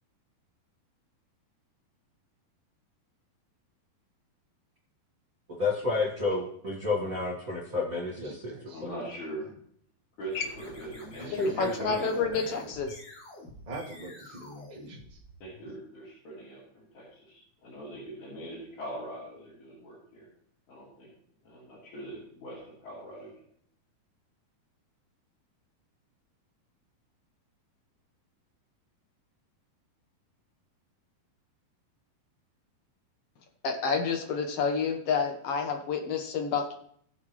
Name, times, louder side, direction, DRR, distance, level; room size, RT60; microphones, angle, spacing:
voice 1, 5.5-8.5 8.8-8.9, left 3 dB, 55° right, -5 dB, 0.9 m, -30 dB
voice 2, 8.1-8.8 9.4-9.6 11.2-12.6 13.6-15.2 15.6-15.8, right 1 dB, 25° right, -2 dB, 1.0 m, -41 dB
voice 3, 8.7-9.5 10.2-12.2 15.4-16.6 16.9-20.3 20.7-21.1 21.4-23.3, right 1 dB, 50° left, -9 dB, 4.5 m, -42 dB
sound 1, 10.2-15.7, left 2 dB, 30° left, 5.4 m, -49 dB
voice 4, 11.3-13.0 33.6-36.7, left 5 dB, 80° left, 3 dB, 1.3 m, -29 dB
19.0 x 6.6 x 3.1 m, 0.63 s
omnidirectional pair, 4.4 m